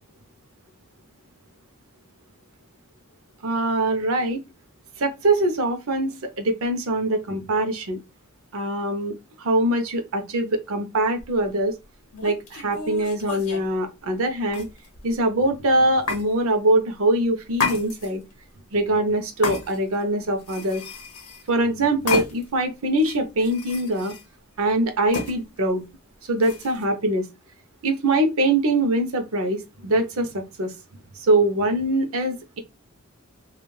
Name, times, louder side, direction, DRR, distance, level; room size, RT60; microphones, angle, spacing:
voice 1, 3.4-4.4 5.0-6.1 6.4-8.0 8.5-11.7 12.2-14.7 15.0-18.2 18.7-20.8 21.5-24.1 24.6-25.9 26.3-27.2 27.8-30.7 31.2-32.6, right 1 dB, 70° right, 0.7 m, -23 dB
sound 1, 11.2-11.4 12.1-13.7 14.5-15.1 16.1-16.3 17.5-18.3 19.4-20.0 20.4-21.5 22.1-22.6 23.0-24.2 25.1-25.3 26.4-26.8, left 4 dB, 80° left, 0.9 m, -31 dB
3.1 x 2.4 x 2.3 m
head